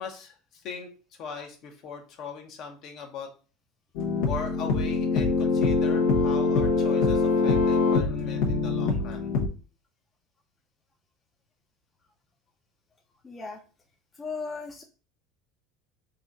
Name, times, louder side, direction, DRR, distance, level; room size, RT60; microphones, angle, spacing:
voice 1, 0.0-3.3 4.3-9.3, left 6 dB, 55° left, 3 dB, 1.0 m, -40 dB
sound 1, 3.9-9.5, left 4 dB, 80° left, 1.0 m, -24 dB
voice 2, 13.2-13.6 14.2-14.8, left 4 dB, 20° left, 1 dB, 0.7 m, -36 dB
4.0 x 2.5 x 3.9 m, 0.36 s
supercardioid pair, 120°, 0 cm